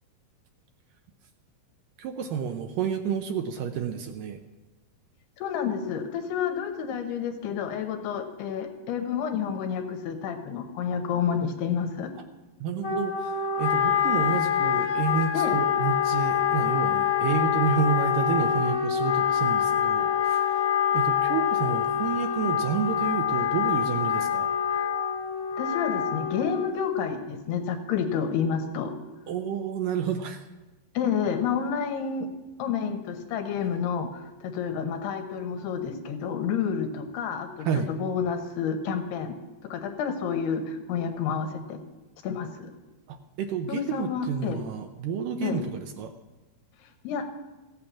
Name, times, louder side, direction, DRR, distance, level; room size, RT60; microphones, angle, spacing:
voice 1, 2.0-4.4 12.6-24.5 29.3-30.4 37.6-37.9 43.1-46.1, right 7 dB, 75° right, 5 dB, 2.0 m, -30 dB
voice 2, 5.4-12.1 15.3-15.6 25.6-28.9 30.9-32.3 32.6-39.4 39.6-41.8 42.2-42.7 43.7-44.6 45.4-45.6 47.0-47.3, left 7 dB, 80° left, 6 dB, 3.0 m, -29 dB
Wind instrument woodwind instrument, 12.8-26.9, left 9 dB, 30° left, 1.7 m, -25 dB
15.5 x 8.6 x 7.2 m, 1.1 s
omnidirectional pair, 4.7 m